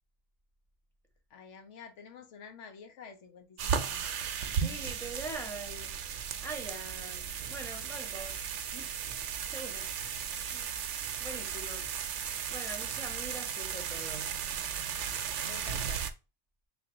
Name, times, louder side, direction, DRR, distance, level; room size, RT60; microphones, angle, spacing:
voice 1, 1.3-4.1 15.4-16.1, left 6 dB, 80° left, 1.0 m, -49 dB
sound 1, 3.6-16.1, right 8 dB, 80° right, 0.9 m, -35 dB
voice 2, 4.5-6.0 6.4-8.4 8.7-8.9 9.5-9.9 10.5-10.7 11.2-11.9 12.5-14.3, right 2 dB, ahead, 0.8 m, -43 dB
3.5 x 2.4 x 3.6 m
omnidirectional pair, 1.2 m